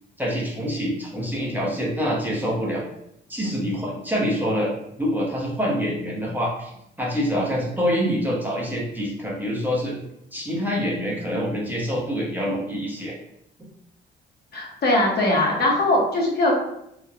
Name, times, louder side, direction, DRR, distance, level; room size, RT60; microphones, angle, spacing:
voice 1, 0.2-2.8 3.3-4.7 5.0-6.7 7.0-9.9 10.3-13.1 13.6-13.7, equal, 10° right, -4 dB, 0.6 m, -26 dB
voice 2, 14.5-16.5, left 1 dB, 55° left, -1 dB, 0.8 m, -20 dB
3.0 x 2.1 x 2.4 m, 0.79 s
cardioid pair, 90°, 20 cm